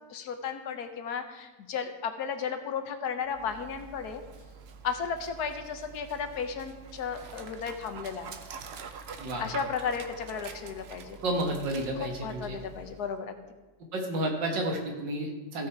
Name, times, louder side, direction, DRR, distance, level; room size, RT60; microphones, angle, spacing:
voice 1, 0.1-4.2 4.8-8.3 9.4-11.2 12.0-13.4, left 6 dB, 65° left, 8 dB, 1.3 m, -34 dB
Dog, 3.3-13.2, right 5 dB, 55° right, 0.7 m, -45 dB
voice 2, 11.2-12.6 13.9-15.7, right 1 dB, 90° right, 2 dB, 2.3 m, -31 dB
15.5 x 6.4 x 4.6 m, 1.2 s
omnidirectional pair, 1.9 m